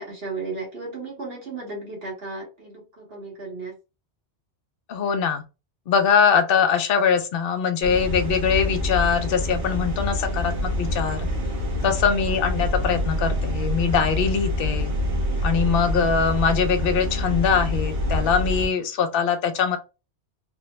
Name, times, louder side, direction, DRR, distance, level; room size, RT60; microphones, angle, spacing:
voice 1, 0.0-3.8 12.0-12.4, right 3 dB, 60° right, 1.7 m, -35 dB
voice 2, 4.9-5.4 5.9-11.3 11.8-14.9 15.4-19.8, left 6 dB, 60° left, 0.8 m, -22 dB
sound 1, 7.8-18.7, left 1 dB, 80° right, 1.4 m, -26 dB
3.4 x 2.1 x 3.0 m
omnidirectional pair, 1.1 m